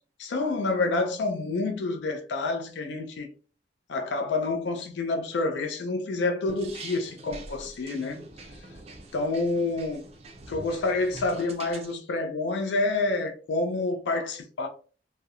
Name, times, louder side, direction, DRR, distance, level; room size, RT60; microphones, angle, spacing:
voice 1, 0.2-3.3 3.9-8.2 9.1-10.0 10.5-14.7, left 3 dB, 70° left, 0.4 m, -28 dB
sound 1, 6.5-11.9, right 2 dB, 35° right, 0.4 m, -44 dB
2.3 x 2.0 x 2.7 m
head